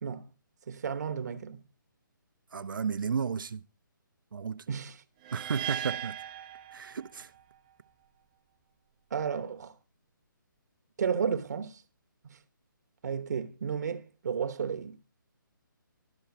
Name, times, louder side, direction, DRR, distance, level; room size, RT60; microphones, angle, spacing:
voice 1, 0.7-1.6 4.7-5.0 9.1-9.7 11.0-11.8 12.3-12.4 13.0-15.0, right 7 dB, 55° right, 0.9 m, -33 dB
voice 2, 2.5-3.6 4.3-4.7 5.3-6.2 6.7-7.3, right 6 dB, 75° right, 0.6 m, -33 dB
sound 1, 5.2-7.4, right 11 dB, 25° right, 0.5 m, -38 dB
12.0 x 4.6 x 7.1 m
hypercardioid pair, 150°, 11 cm